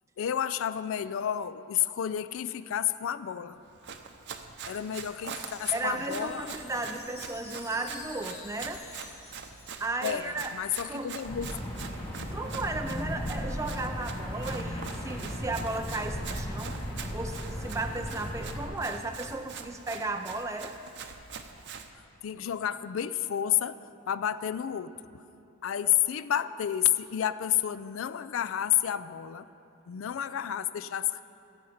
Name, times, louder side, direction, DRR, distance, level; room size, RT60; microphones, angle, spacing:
voice 1, 0.2-3.6 4.7-6.5 10.0-11.5 12.2-12.3 22.2-23.8 24.1-24.9 25.6-29.5 29.9-31.2, left 10 dB, 65° left, 14 dB, 0.3 m, -30 dB
Run, 3.7-21.9, right 6 dB, 55° right, 0.7 m, -44 dB
Wind chime, 4.5-10.4, left 4 dB, 80° left, 1.9 m, -50 dB
voice 2, 5.7-8.8 9.8-10.5 10.9-11.1 12.2-16.8 17.1-20.7, right 2 dB, 15° right, 5 dB, 0.3 m, -35 dB
sound 1, 11.2-18.6, equal, 20° left, 2.0 m, -36 dB
16.0 x 7.9 x 5.6 m, 2.8 s
head